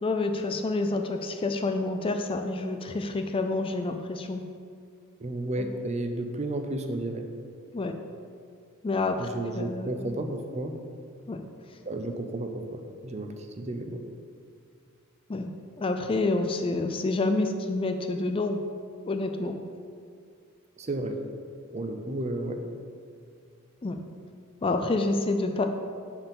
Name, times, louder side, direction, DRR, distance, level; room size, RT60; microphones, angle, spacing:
voice 1, 0.0-4.4 5.6-5.7 7.7-7.9 8.8-10.1 11.3-11.4 11.7-11.8 15.3-15.5 15.8-18.6 19.1-19.6 23.8-24.0 24.6-25.7, left 2 dB, 25° left, 6 dB, 0.4 m, -28 dB
voice 2, 5.2-7.3 9.2-10.8 11.9-14.0 20.8-21.2 21.7-22.6, right 2 dB, 30° right, 6 dB, 0.6 m, -32 dB
7.4 x 4.6 x 7.0 m, 2.3 s
head